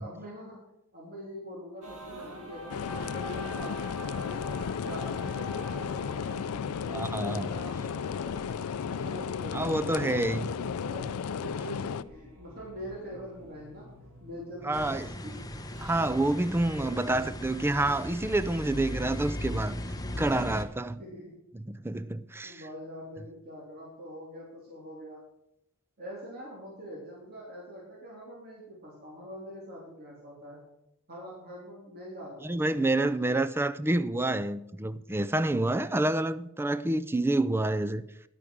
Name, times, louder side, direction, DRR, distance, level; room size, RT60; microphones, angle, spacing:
voice 1, 0.0-8.4 8.9-13.9 14.2-15.3 16.8-17.1 21.0-21.4 22.4-25.2 26.0-30.6 31.1-33.4, equal, 45° right, 3.2 m, -44 dB
sound 1, 1.8-16.1, equal, 70° right, 2.5 m, -47 dB
sound 2, 2.7-12.0, left 7 dB, 75° left, 0.4 m, -34 dB
voice 2, 6.9-7.5 9.5-10.5 14.6-15.1 15.8-19.8 20.2-21.0 21.6-22.6 32.4-38.0, right 2 dB, 10° right, 0.4 m, -28 dB
sound 3, 14.7-20.6, left 1 dB, 15° left, 0.9 m, -37 dB
11.0 x 8.5 x 6.2 m
head